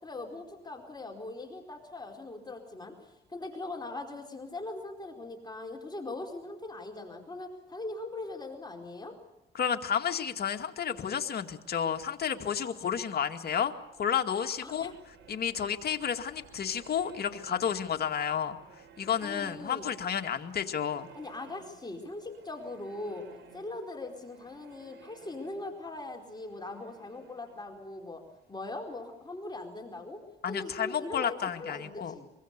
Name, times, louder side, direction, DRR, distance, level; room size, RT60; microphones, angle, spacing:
voice 1, 0.0-9.2 14.6-14.9 19.2-19.9 21.2-23.2 23.5-28.2 28.5-30.2 30.5-32.3, left 2 dB, 20° left, 2 dB, 4.5 m, -41 dB
voice 2, 9.5-13.7 14.0-14.9 15.3-18.6 19.0-21.1 30.4-32.1, left 8 dB, 50° left, 5 dB, 2.2 m, -31 dB
sound 1, 12.7-29.3, right 6 dB, 70° right, 4.8 m, -57 dB
24.0 x 23.5 x 6.9 m, 0.98 s
cardioid pair, 90°, 20 cm